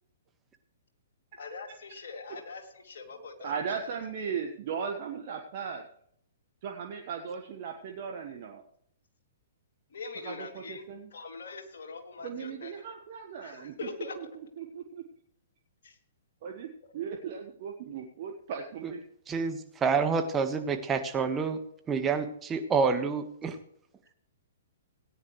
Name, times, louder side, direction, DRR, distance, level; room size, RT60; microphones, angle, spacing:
voice 1, 1.4-3.9 9.9-10.8 11.1-12.9 13.4-14.4 15.8-16.0, left 4 dB, 65° left, 3 dB, 2.6 m, -43 dB
voice 2, 3.4-5.8 6.6-8.6 10.2-10.3 10.7-11.1 12.2-13.9 14.2-14.3 14.6-15.0 16.4-16.7 16.9-19.0, right 6 dB, 50° right, 2 dB, 1.4 m, -37 dB
voice 3, 19.3-21.6 21.9-23.6, right 5 dB, 15° right, 6 dB, 1.5 m, -28 dB
17.0 x 9.8 x 3.2 m, 0.67 s
hypercardioid pair, 120°, 0 cm